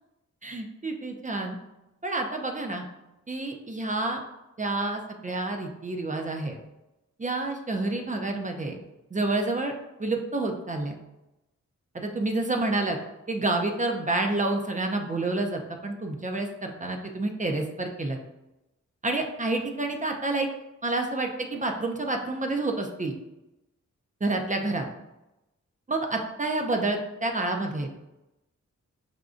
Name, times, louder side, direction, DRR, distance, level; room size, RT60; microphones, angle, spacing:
voice 1, 0.4-1.6 2.0-2.8 3.3-4.2 4.6-6.6 7.2-8.8 9.1-9.7 10.0-10.9 11.9-13.0 13.3-18.2 19.0-20.5 20.8-23.1 24.2-24.9 25.9-28.0, right 2 dB, 25° right, 3 dB, 0.5 m, -29 dB
5.0 x 2.2 x 2.5 m, 0.96 s
cardioid pair, 55°, 31 cm